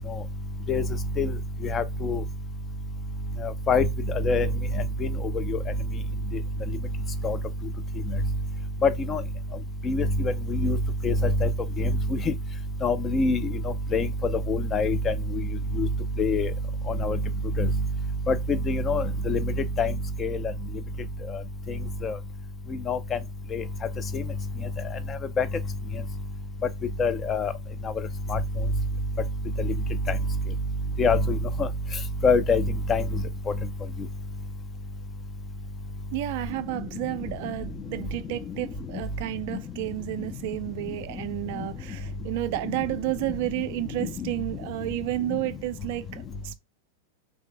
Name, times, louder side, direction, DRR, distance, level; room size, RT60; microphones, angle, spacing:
voice 1, 1.7-2.2 3.7-3.9 4.2-4.5 5.5-5.6 7.2-7.4 8.8-9.2 9.9-10.1 10.5-10.8 11.0-11.1 11.4-11.5 11.8-11.9 12.8-13.4 13.9-14.1 14.5-15.1 15.8-15.9 16.2-16.5 17.0-17.2 17.6-17.7 18.3-19.4 19.8-19.9 20.2-20.4 22.0-22.1 22.9-23.0 23.5-23.6 25.4-25.5 27.0-27.5 28.3-28.4 31.0-31.7 32.2-32.6 32.9-33.0, left 4 dB, 25° left, 0.4 m, -23 dB
voice 2, 36.1-46.5, right 17 dB, 50° right, 0.3 m, -31 dB
3.2 x 2.7 x 3.4 m
figure-of-eight pair, 90°, 0 cm